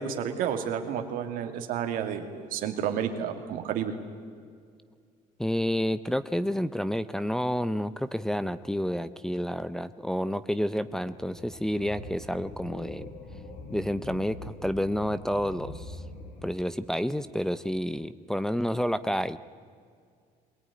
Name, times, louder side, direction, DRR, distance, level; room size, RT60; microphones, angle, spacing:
voice 1, 0.0-3.9, right 8 dB, 75° right, 6 dB, 2.5 m, -31 dB
voice 2, 5.4-13.1 13.7-16.0 16.4-19.4, equal, 5° left, 11 dB, 0.6 m, -29 dB
sound 1, 10.7-16.4, left 2 dB, 75° left, 5.2 m, -43 dB
23.0 x 18.0 x 9.7 m, 2.2 s
cardioid pair, 120°, 15 cm